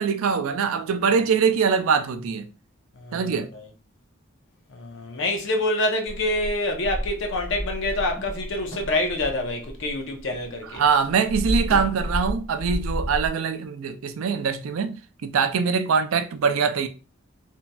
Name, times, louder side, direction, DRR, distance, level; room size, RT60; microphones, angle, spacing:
voice 1, 0.0-2.5 3.1-3.5 10.6-16.9, right 6 dB, 80° right, 0.4 m, -23 dB
voice 2, 3.0-3.4 4.7-10.8, left 1 dB, 60° left, 0.7 m, -26 dB
sound 1, 6.1-10.5 10.7-13.3, equal, 10° left, 1.1 m, -31 dB
2.9 x 2.7 x 2.2 m
head